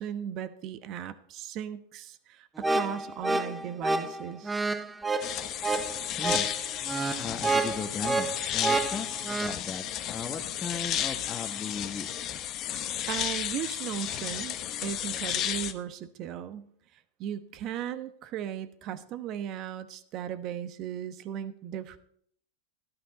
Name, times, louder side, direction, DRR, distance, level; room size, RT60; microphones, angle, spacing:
voice 1, 0.0-4.5 13.1-22.0, right 10 dB, 45° right, 12 dB, 1.0 m, -37 dB
sound 1, 2.6-9.5, right 3 dB, 10° right, 0.7 m, -29 dB
sound 2, 5.2-15.7, left 11 dB, 40° left, 1.0 m, -33 dB
voice 2, 6.2-6.5 7.2-12.1, left 5 dB, 20° left, 4 dB, 1.3 m, -37 dB
12.5 x 12.0 x 4.0 m, 0.62 s
hypercardioid pair, 110°, 0 cm